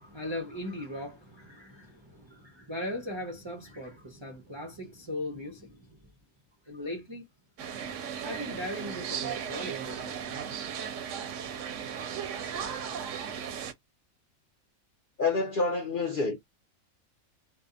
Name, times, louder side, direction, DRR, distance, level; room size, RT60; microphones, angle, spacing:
voice 1, 0.0-6.0 6.7-7.2 8.2-10.2 12.2-12.7, left 1 dB, 35° right, 0.4 m, -39 dB
sound 1, 7.6-13.7, right 8 dB, 70° right, 0.9 m, -36 dB
voice 2, 15.2-16.5, left 3 dB, 60° left, 0.5 m, -28 dB
2.7 x 2.2 x 2.4 m
omnidirectional pair, 1.4 m